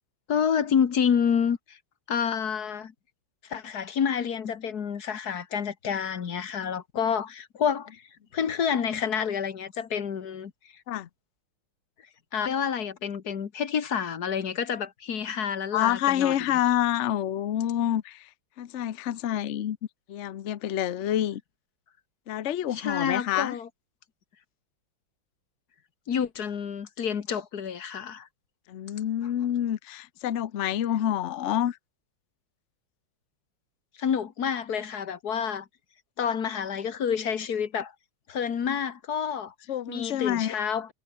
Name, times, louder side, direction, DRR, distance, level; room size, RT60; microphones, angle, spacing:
voice 1, 0.3-1.8 2.1-2.9 3.4-8.1 8.3-10.8 12.3-16.4 22.7-23.7 26.1-28.3 34.0-35.7 36.2-37.9 38.3-39.5 39.9-40.9, left 7 dB, 50° left, 1.9 m, -28 dB
voice 2, 15.7-18.3 18.6-19.8 20.1-21.4 22.3-23.6 28.7-31.8 39.7-40.6, left 11 dB, 75° left, 0.6 m, -27 dB
omnidirectional pair, 2.3 m